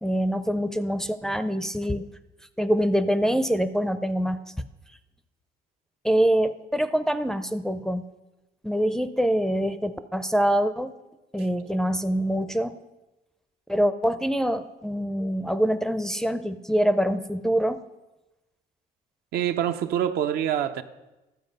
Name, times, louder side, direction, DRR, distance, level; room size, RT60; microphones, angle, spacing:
voice 1, 0.0-2.1 2.6-4.4 6.0-8.1 8.6-10.9 11.3-12.8 13.7-17.8, equal, 5° left, 10 dB, 0.4 m, -25 dB
voice 2, 19.3-20.8, right 10 dB, 70° right, 9 dB, 0.6 m, -25 dB
12.0 x 7.6 x 5.3 m, 1.1 s
cardioid pair, 110°, 17 cm